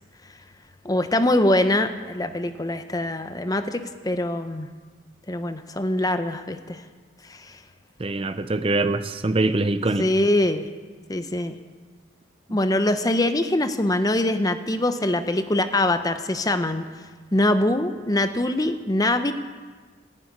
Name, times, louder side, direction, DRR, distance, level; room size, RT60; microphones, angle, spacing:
voice 1, 0.8-4.7 5.3-6.8 7.3-7.6 10.0-10.7 11.1-11.6 12.5-16.8 17.3-19.3, left 1 dB, 20° left, 9 dB, 0.7 m, -23 dB
voice 2, 8.0-10.1, right 2 dB, 30° right, 10 dB, 0.6 m, -23 dB
15.0 x 9.9 x 9.4 m, 1.4 s
head